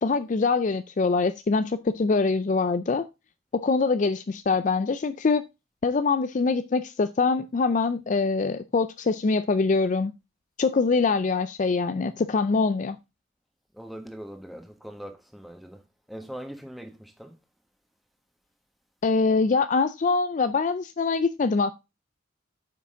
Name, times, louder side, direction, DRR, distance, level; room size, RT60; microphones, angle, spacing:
voice 1, 0.0-3.1 3.5-5.4 5.8-10.1 10.6-13.0 19.0-21.7, left 4 dB, 40° left, 0.4 m, -24 dB
voice 2, 13.7-15.8 16.1-17.3, equal, ahead, 1.3 m, -41 dB
8.5 x 5.8 x 3.7 m
head